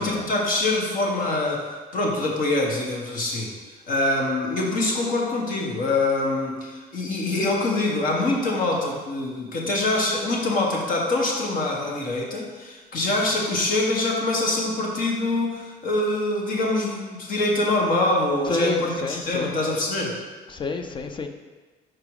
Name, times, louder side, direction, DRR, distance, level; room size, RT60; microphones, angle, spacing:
voice 1, 0.0-3.5 3.9-20.2, left 2 dB, 55° left, -1 dB, 1.4 m, -24 dB
voice 2, 18.5-19.6 20.5-21.3, left 3 dB, 30° left, 7 dB, 0.6 m, -29 dB
5.1 x 4.7 x 4.9 m, 1.3 s
cardioid pair, 110°, 17 cm